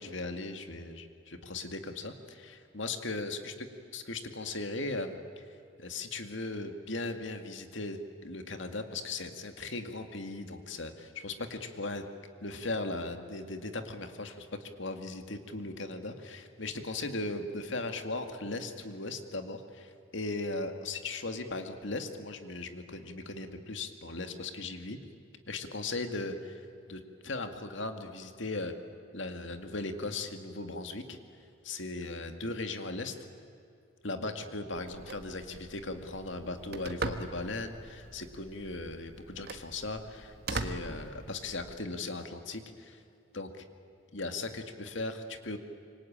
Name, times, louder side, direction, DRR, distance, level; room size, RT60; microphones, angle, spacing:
voice 1, 0.0-3.7 3.9-5.5 5.8-12.0 12.4-25.0 25.5-28.7 29.1-31.2 31.6-33.2 34.0-43.0 43.3-43.6 44.1-45.6, left 2 dB, 65° left, 7 dB, 2.2 m, -38 dB
Telephone, 34.8-41.7, right 3 dB, 50° right, 1.6 m, -41 dB
27.0 x 24.5 x 8.8 m, 2.7 s
head